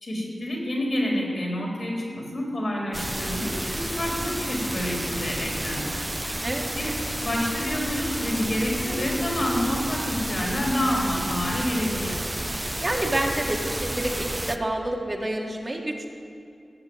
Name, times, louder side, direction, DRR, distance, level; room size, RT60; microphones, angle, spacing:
voice 1, 0.0-6.1 6.8-6.9 7.2-12.2, left 1 dB, 60° left, -2 dB, 3.8 m, -28 dB
sound 1, 2.9-14.6, right 1 dB, 20° right, 0.7 m, -31 dB
voice 2, 12.8-16.1, right 1 dB, 35° right, 0 dB, 1.8 m, -28 dB
16.5 x 6.7 x 7.9 m, 2.5 s
cardioid pair, 50°, 0 cm